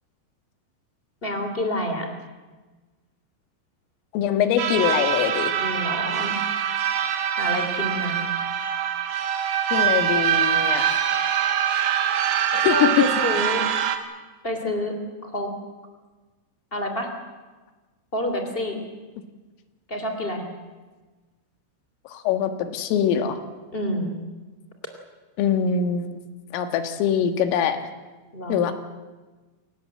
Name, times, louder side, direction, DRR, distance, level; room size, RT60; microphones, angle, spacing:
voice 1, 1.2-2.1 5.6-6.3 7.4-8.2 12.6-13.6 14.4-14.9 15.2-15.5 16.7-17.1 18.1-18.8 19.9-20.4 23.7-24.1 28.3-28.6, left 1 dB, 15° left, 5 dB, 2.2 m, -28 dB
voice 2, 4.1-5.5 9.7-11.0 12.5-12.8 22.1-23.4 25.4-26.2 26.5-27.8 28.5-28.7, left 8 dB, 90° left, 8 dB, 4.2 m, -23 dB
sound 1, 4.6-14.0, right 9 dB, 60° right, 2.8 m, -24 dB
28.5 x 18.5 x 7.8 m, 1.3 s
omnidirectional pair, 5.7 m